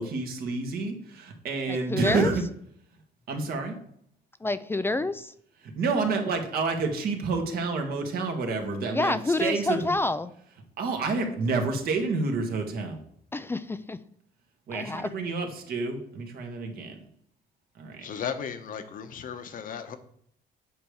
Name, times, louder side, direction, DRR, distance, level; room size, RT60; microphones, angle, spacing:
voice 1, 0.0-2.3 3.3-3.7 5.6-9.1 9.4-9.9 10.8-13.0 14.7-17.0 17.8-18.0, right 3 dB, 65° right, 1.8 m, -29 dB
voice 2, 1.7-2.3 4.4-5.3 8.9-10.3 13.3-14.0 14.7-15.1, left 2 dB, 15° left, 0.4 m, -28 dB
voice 3, 18.0-20.0, left 7 dB, 55° left, 1.0 m, -35 dB
8.7 x 3.4 x 6.4 m
cardioid pair, 110°, 17 cm